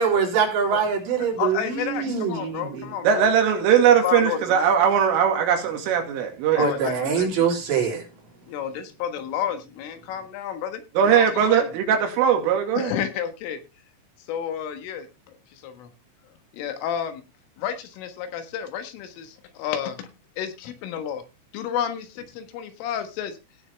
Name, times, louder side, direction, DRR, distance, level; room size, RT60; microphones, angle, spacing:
voice 1, 0.0-2.9 6.6-8.0, right 6 dB, 65° right, 5.6 m, -24 dB
voice 2, 1.4-3.2 4.0-4.7 6.6-7.4 8.5-11.7 12.8-13.6 14.3-15.1 15.5-15.9 16.5-17.2 17.6-20.1 20.4-21.2 21.5-23.4, left 9 dB, 85° left, 4.1 m, -31 dB
voice 3, 3.0-6.7 11.0-12.9, right 8 dB, 85° right, 4.8 m, -20 dB
17.5 x 7.1 x 3.4 m
omnidirectional pair, 5.6 m